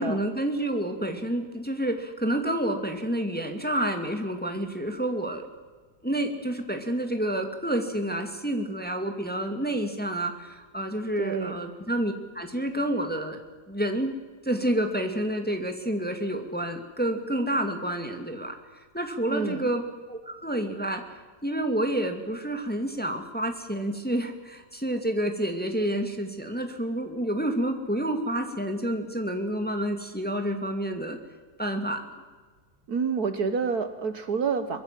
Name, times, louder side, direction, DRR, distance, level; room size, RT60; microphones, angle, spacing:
voice 1, 0.0-5.5 6.0-13.4 13.7-14.1 14.4-18.6 18.9-19.8 20.1-21.0 21.4-31.2 31.6-32.0, right 1 dB, 5° left, 5 dB, 2.1 m, -29 dB
voice 2, 11.2-11.6 19.3-19.7 32.9-34.8, right 5 dB, 55° right, 10 dB, 1.6 m, -28 dB
24.0 x 21.5 x 7.6 m, 1.4 s
omnidirectional pair, 2.0 m